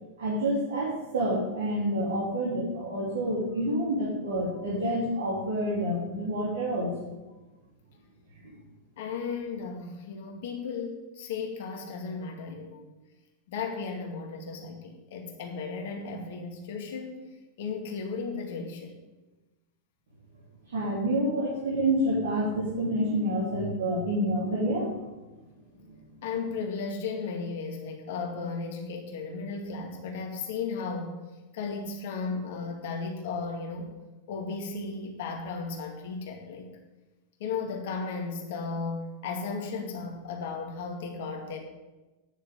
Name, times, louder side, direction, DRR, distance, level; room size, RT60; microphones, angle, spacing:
voice 1, 0.2-7.1 20.7-25.0, right 1 dB, 65° right, -5 dB, 3.4 m, -28 dB
voice 2, 9.0-12.9 13.5-17.3 17.6-19.0 26.2-31.2 31.5-33.9 34.3-36.7 37.4-41.6, left 4 dB, 55° left, 2 dB, 2.2 m, -35 dB
9.7 x 7.0 x 8.7 m, 1.1 s
figure-of-eight pair, 90°, 0 cm